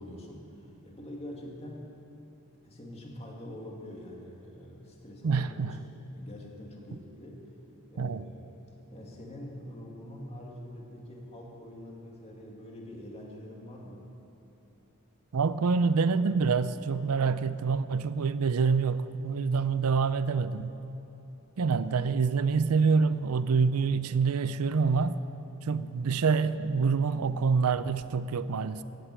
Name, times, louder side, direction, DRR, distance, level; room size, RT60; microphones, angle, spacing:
voice 1, 0.0-1.9 2.6-5.7 6.1-7.4 7.9-8.6 8.9-14.1, left 1 dB, 30° left, -2 dB, 2.3 m, -45 dB
voice 2, 5.2-5.7 8.0-8.2 15.3-20.7 21.6-25.2 25.6-28.8, right 5 dB, 80° right, 14 dB, 0.5 m, -26 dB
16.5 x 9.2 x 7.9 m, 3.0 s
head